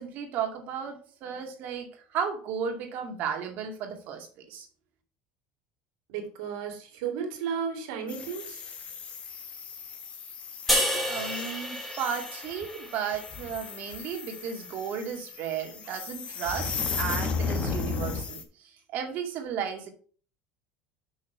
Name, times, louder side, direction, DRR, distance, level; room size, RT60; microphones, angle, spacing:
voice 1, 0.0-4.7 10.9-19.9, right 7 dB, 55° right, 3 dB, 2.2 m, -34 dB
voice 2, 6.1-8.7, right 7 dB, 80° right, 2 dB, 2.5 m, -34 dB
sound 1, 8.1-18.4, left 5 dB, 35° left, 1.4 m, -35 dB
sound 2, 10.7-14.0, equal, 5° left, 3.0 m, -31 dB
6.3 x 6.3 x 4.6 m, 0.41 s
supercardioid pair, 125°, 3 cm